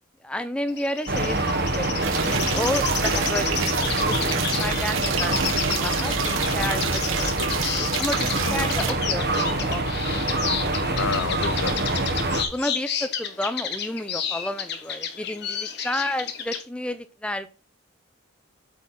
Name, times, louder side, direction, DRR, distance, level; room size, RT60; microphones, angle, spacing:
voice 1, 0.2-1.4 1.7-5.4 5.8-6.8 7.2-7.3 7.7-10.1 12.5-17.5, left 1 dB, 5° left, 11 dB, 0.4 m, -31 dB
sound 1, 0.7-16.6, left 7 dB, 55° left, 1.2 m, -32 dB
sound 2, 1.1-12.4, right 2 dB, 50° right, 1.2 m, -25 dB
sound 3, 2.0-8.9, right 7 dB, 75° right, 1.0 m, -30 dB
voice 2, 11.0-12.0, left 6 dB, 85° left, 12 dB, 0.5 m, -30 dB
8.2 x 4.3 x 5.7 m, 0.34 s
head